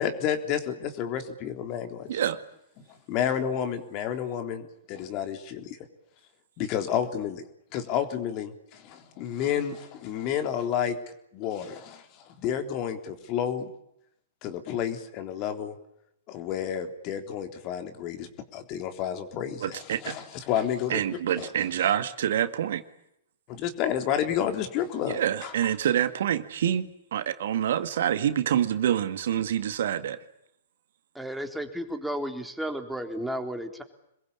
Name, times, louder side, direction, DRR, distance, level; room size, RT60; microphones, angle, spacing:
voice 1, 0.0-2.2 3.1-5.7 6.6-7.4 7.7-11.0 11.3-12.0 12.4-13.7 14.4-15.7 16.3-18.3 18.5-21.5 23.5-25.5, left 9 dB, 40° left, 7 dB, 3.7 m, -30 dB
voice 2, 2.1-2.4 19.6-20.1 20.9-22.8 25.1-30.2, right 10 dB, 60° right, 11 dB, 1.9 m, -27 dB
voice 3, 31.1-33.8, equal, ahead, 4 dB, 3.7 m, -33 dB
27.0 x 22.0 x 8.7 m, 0.78 s
figure-of-eight pair, 110°, 0 cm